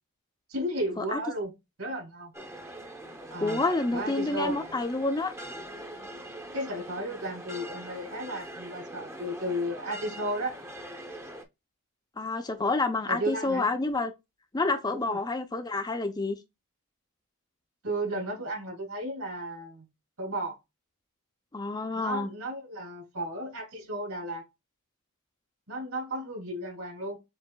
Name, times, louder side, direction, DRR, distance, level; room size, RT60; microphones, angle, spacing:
voice 1, 0.5-1.5 1.8-2.3 3.3-3.6 3.9-4.5 6.5-10.5 13.1-13.7 14.9-15.2 17.8-19.9 20.2-20.5 22.0-24.4 25.7-27.2, right 1 dB, 70° right, 3.2 m, -34 dB
sound 1, 2.3-11.4, right 1 dB, 10° right, 0.8 m, -42 dB
voice 2, 3.4-5.3 12.2-14.1 14.5-16.4 21.5-22.3, left 3 dB, 20° left, 0.5 m, -28 dB
7.2 x 3.1 x 2.3 m
head